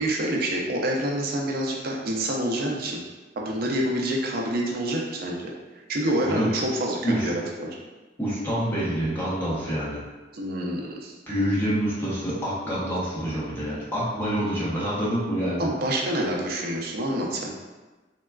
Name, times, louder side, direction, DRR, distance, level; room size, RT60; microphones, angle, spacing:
voice 1, 0.0-3.0 3.4-5.5 5.9-7.8 10.3-11.1 15.6-17.5, right 1 dB, 55° right, -1 dB, 0.5 m, -27 dB
voice 2, 8.2-10.0 11.3-15.7, equal, 10° left, -8 dB, 0.7 m, -27 dB
3.4 x 2.2 x 2.3 m, 1.2 s
head